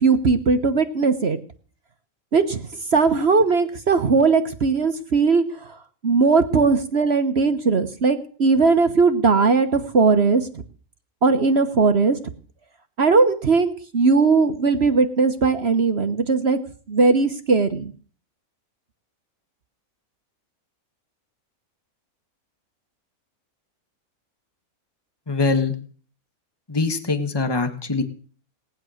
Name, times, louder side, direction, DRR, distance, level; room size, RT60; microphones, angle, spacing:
voice 1, 0.0-1.4 2.3-5.8 6.0-10.5 11.2-12.2 13.0-16.6 16.9-17.9, right 4 dB, 45° right, 9 dB, 1.4 m, -19 dB
voice 2, 25.3-25.8 26.7-28.0, left 3 dB, 15° left, 8 dB, 1.6 m, -23 dB
19.0 x 10.5 x 6.5 m, 0.42 s
omnidirectional pair, 1.6 m